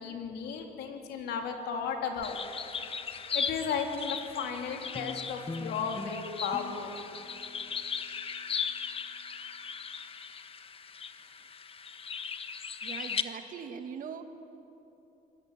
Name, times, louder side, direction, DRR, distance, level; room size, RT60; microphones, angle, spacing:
voice 1, 0.0-2.4 3.3-6.9, left 6 dB, 75° left, 3 dB, 3.6 m, -34 dB
sound 1, 2.2-13.2, left 6 dB, 35° left, 1.3 m, -38 dB
sound 2, 4.9-9.6, left 3 dB, 15° left, 1.0 m, -45 dB
voice 2, 12.8-14.2, right 7 dB, 55° right, 7 dB, 2.1 m, -41 dB
26.5 x 21.0 x 9.1 m, 2.9 s
cardioid pair, 110°, 17 cm